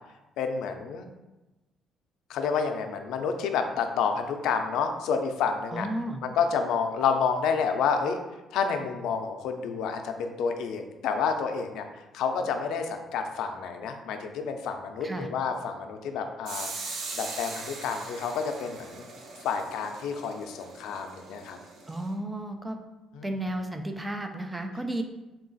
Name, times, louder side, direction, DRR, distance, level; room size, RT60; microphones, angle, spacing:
voice 1, 0.4-1.1 2.3-5.9 6.2-8.2 8.5-11.9 12.1-19.0 19.4-21.6 23.1-23.3, left 6 dB, 80° left, 6 dB, 0.4 m, -29 dB
voice 2, 5.7-6.2 15.0-15.3 21.9-22.8 23.2-25.0, right 1 dB, 10° right, 5 dB, 0.3 m, -33 dB
sound 1, 16.4-22.1, right 3 dB, 60° right, 0.5 m, -41 dB
3.7 x 2.4 x 3.8 m, 1.1 s
cardioid pair, 175°, 0 cm